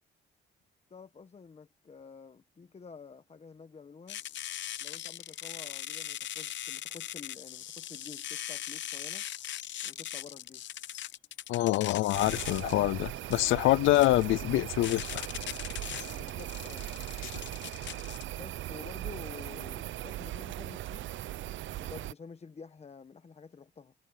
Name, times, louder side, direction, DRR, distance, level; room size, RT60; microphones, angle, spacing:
voice 1, 0.9-4.2 4.8-9.2 9.8-10.7 16.0-16.9 18.3-21.1 21.8-23.9, left 5 dB, 30° left, 1.2 m, -49 dB
sound 1, 4.1-18.2, left 12 dB, 70° left, 0.9 m, -40 dB
voice 2, 11.5-15.3 17.2-17.3, left 17 dB, 85° left, 0.5 m, -26 dB
sound 2, 12.1-22.1, right 14 dB, 75° right, 0.7 m, -39 dB
cardioid pair, 90°, 20 cm